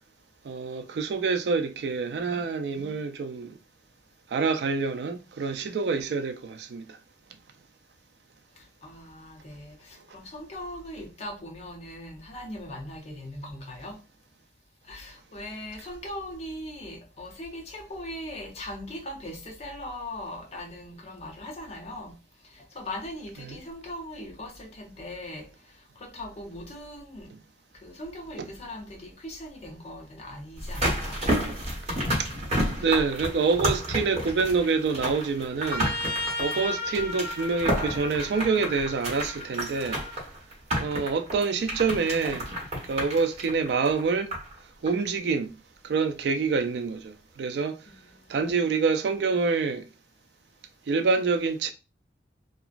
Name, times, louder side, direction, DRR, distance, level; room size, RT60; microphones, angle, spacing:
voice 1, 0.4-3.6 4.3-6.8 23.4-23.6 27.3-27.4 28.4-28.5 32.2-32.3 32.8-35.9 36.4-40.0 40.8-42.5 42.9-44.3 44.8-45.5 45.8-47.8 48.3-49.8 50.9-51.7, right 4 dB, 65° right, 0.3 m, -26 dB
voice 2, 8.8-14.0 14.9-22.2 22.4-27.3 27.8-31.2 48.2-48.5, left 1 dB, 35° left, 0.6 m, -40 dB
sound 1, 30.6-44.6 44.9-45.0, equal, 35° right, 1.1 m, -31 dB
Trumpet, 35.6-40.2, left 2 dB, 60° left, 1.4 m, -35 dB
2.8 x 2.4 x 2.4 m
head